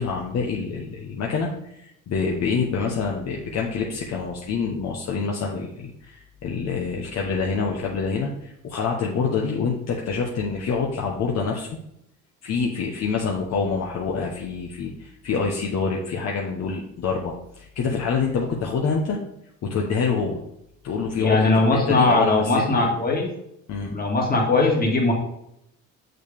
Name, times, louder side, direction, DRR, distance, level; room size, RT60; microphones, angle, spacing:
voice 1, 0.0-11.7 12.4-19.2 19.6-20.4 20.8-22.9 23.7-23.9, left 5 dB, 55° left, -1 dB, 1.0 m, -26 dB
voice 2, 21.2-23.3 23.9-25.1, left 2 dB, 30° left, 0 dB, 2.1 m, -20 dB
6.5 x 6.4 x 3.4 m, 0.79 s
cardioid pair, 105°, 31 cm